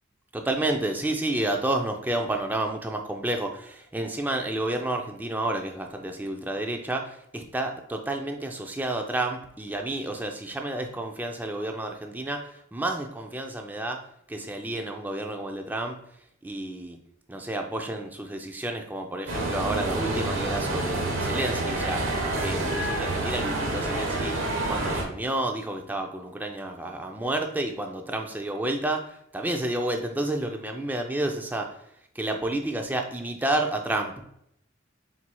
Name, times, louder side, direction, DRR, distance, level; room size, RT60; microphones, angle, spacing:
voice 1, 0.3-16.0 16.4-17.0 17.3-24.4 24.7-31.8 32.2-34.3, right 1 dB, 10° right, 3 dB, 0.4 m, -30 dB
sound 1, 19.3-25.0, right 2 dB, 75° right, 1.1 m, -28 dB
4.5 x 4.2 x 2.2 m, 0.71 s
head